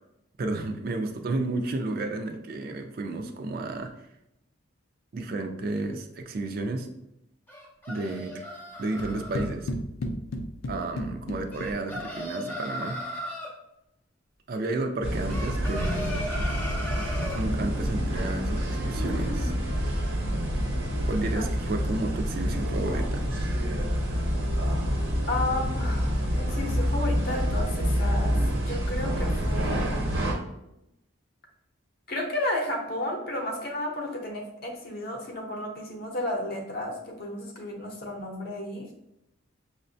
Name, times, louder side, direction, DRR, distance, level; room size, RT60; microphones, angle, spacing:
voice 1, 0.4-3.9 5.1-6.9 7.9-8.4 8.8-9.7 10.7-13.0 14.5-16.3 17.3-19.5 21.1-23.3, right 2 dB, 45° right, 5 dB, 0.3 m, -32 dB
sound 1, 7.5-9.5 11.5-13.5 15.3-17.4, equal, 10° left, 0.5 m, -36 dB
sound 2, 9.0-12.2, left 1 dB, 85° left, 0.4 m, -34 dB
sound 3, 15.0-30.3, equal, 80° right, 0.9 m, -27 dB
voice 2, 25.3-30.0 32.1-38.9, left 1 dB, 45° left, 2 dB, 0.7 m, -32 dB
5.6 x 2.1 x 2.6 m, 0.85 s
head